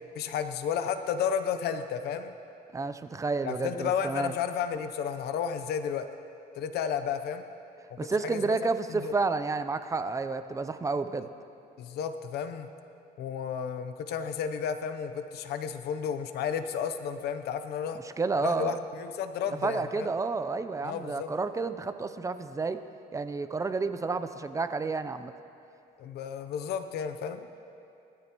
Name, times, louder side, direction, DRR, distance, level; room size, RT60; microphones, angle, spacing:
voice 1, 0.2-2.3 3.4-6.1 6.5-7.4 7.9-8.6 8.9-9.1 11.8-12.7 13.2-18.0 18.4-20.1 20.8-21.3 26.0-27.5, left 7 dB, 70° left, 9 dB, 0.8 m, -32 dB
voice 2, 2.7-4.3 8.0-11.3 18.2-18.8 19.6-22.8 23.1-25.3, right 4 dB, 20° right, 10 dB, 0.5 m, -30 dB
20.0 x 13.5 x 3.0 m, 2.7 s
cardioid pair, 110°, 17 cm